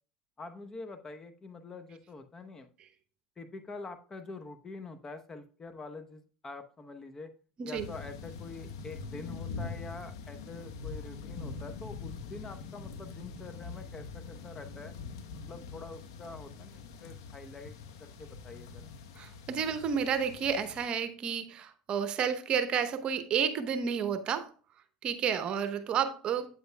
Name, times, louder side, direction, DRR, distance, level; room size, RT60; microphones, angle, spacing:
voice 1, 0.4-2.7 3.4-7.3 7.6-14.9 15.5-17.7 18.0-18.8, left 3 dB, 25° left, 9 dB, 0.9 m, -45 dB
sound 1, 7.8-20.9, left 5 dB, 80° left, 1.0 m, -44 dB
voice 2, 19.2-24.5 25.0-26.5, right 7 dB, 45° right, 10 dB, 0.9 m, -31 dB
8.9 x 7.9 x 2.2 m, 0.41 s
supercardioid pair, 90°, 2 cm